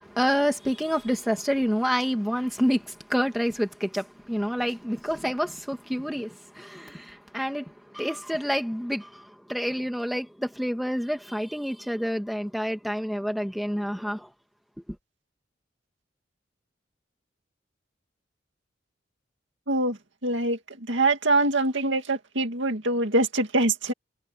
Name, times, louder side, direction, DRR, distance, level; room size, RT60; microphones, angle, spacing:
voice 1, 0.0-14.3 14.9-15.0, equal, ahead, 2.5 m, -28 dB
voice 2, 19.7-20.0 20.2-20.6 20.9-23.9, right 2 dB, 70° right, 2.3 m, -24 dB
head